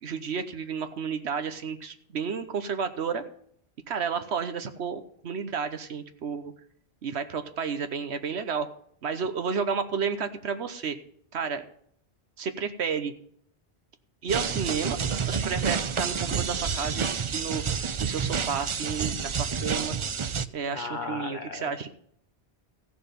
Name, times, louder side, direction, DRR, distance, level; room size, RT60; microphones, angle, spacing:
voice 1, 0.0-3.2 3.9-6.5 7.0-8.7 9.0-11.0 11.3-11.7 12.4-13.1 14.2-15.0 15.3-19.9 20.5-21.9, right 6 dB, 85° right, 9 dB, 1.2 m, -31 dB
sound 1, 14.3-20.4, right 6 dB, 40° right, 0.4 m, -29 dB
voice 2, 20.7-21.9, left 4 dB, 50° left, 6 dB, 0.8 m, -36 dB
15.5 x 6.8 x 5.3 m, 0.64 s
omnidirectional pair, 1.1 m